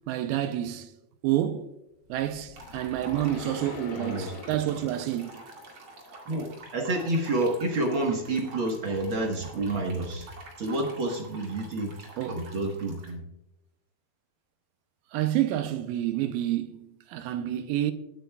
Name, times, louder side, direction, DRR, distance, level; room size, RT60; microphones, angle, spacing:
voice 1, 0.1-0.9 1.2-1.7 2.1-5.4 12.2-12.4 15.1-17.9, right 12 dB, 80° right, 2.3 m, -29 dB
sound 1, 2.0-6.4, left 3 dB, 75° left, 3.0 m, -44 dB
sound 2, 2.5-13.1, right 2 dB, 40° right, 2.6 m, -48 dB
voice 2, 3.9-4.3 6.3-6.5 6.7-10.3 10.6-13.2, right 2 dB, 60° right, 1.3 m, -29 dB
19.5 x 8.9 x 2.3 m
omnidirectional pair, 4.2 m